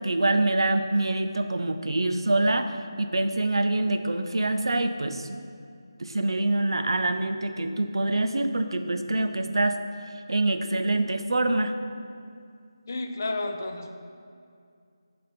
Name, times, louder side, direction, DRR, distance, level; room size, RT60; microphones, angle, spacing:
voice 1, 0.0-5.4 6.0-9.8 10.3-11.7, right 2 dB, 80° right, 8 dB, 0.5 m, -25 dB
voice 2, 12.9-14.0, left 2 dB, 40° left, 5 dB, 0.4 m, -31 dB
9.6 x 3.4 x 4.3 m, 2.3 s
figure-of-eight pair, 175°, 2 cm